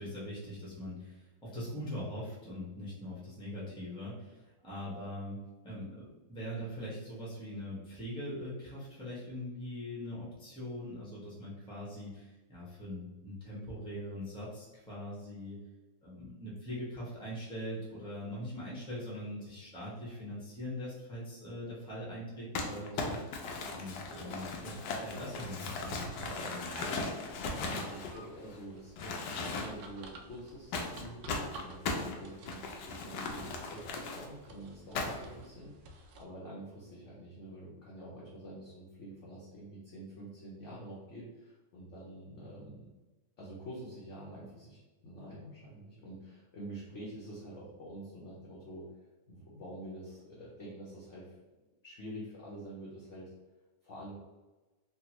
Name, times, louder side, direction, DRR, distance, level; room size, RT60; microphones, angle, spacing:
voice 1, 0.0-15.6 16.0-23.4 23.7-27.0, left 1 dB, 5° left, -6 dB, 0.6 m, -42 dB
Crumpling crinkling, 22.5-28.6 29.0-29.9 30.7-34.3 34.9-35.4, left 3 dB, 75° left, 1.1 m, -38 dB
sound 1, 24.3-36.2, right 1 dB, 80° right, 1.2 m, -54 dB
voice 2, 27.5-42.9 43.4-48.9 49.3-51.4 51.8-53.3 53.8-54.1, right 1 dB, 60° left, -6 dB, 0.8 m, -47 dB
3.6 x 2.3 x 2.9 m, 1.2 s
omnidirectional pair, 1.9 m